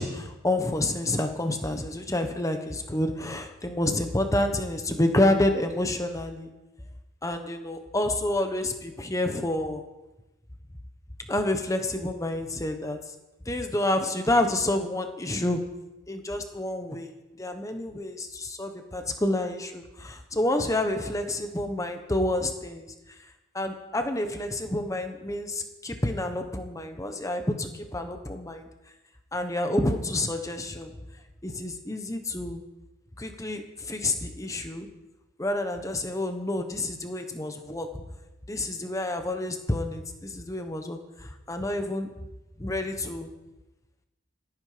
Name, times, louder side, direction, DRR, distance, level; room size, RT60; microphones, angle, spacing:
voice 1, 0.0-6.5 7.2-9.8 11.3-13.0 13.5-15.6 16.1-17.1 17.4-22.9 23.5-28.7 29.3-30.9 31.4-32.6 33.2-34.9 35.4-37.9 38.5-42.1 42.6-43.3, left 1 dB, 15° left, 6 dB, 1.2 m, -28 dB
27.5 x 9.5 x 5.1 m, 1.0 s
head